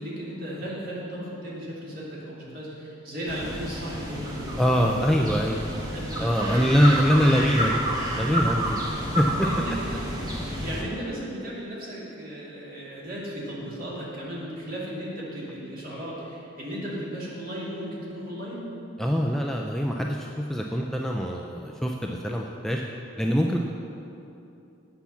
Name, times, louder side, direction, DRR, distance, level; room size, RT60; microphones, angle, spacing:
voice 1, 0.0-4.9 5.4-6.9 8.6-8.7 9.4-10.0 10.6-18.7, equal, 45° right, -6 dB, 2.4 m, -36 dB
sound 1, 3.3-10.8, equal, 20° right, 1.1 m, -30 dB
voice 2, 4.6-5.6 6.2-7.8 8.1-8.7 9.2-9.5 19.0-22.8 23.2-23.6, equal, ahead, 0 dB, 0.3 m, -23 dB
8.2 x 5.7 x 7.0 m, 2.8 s
head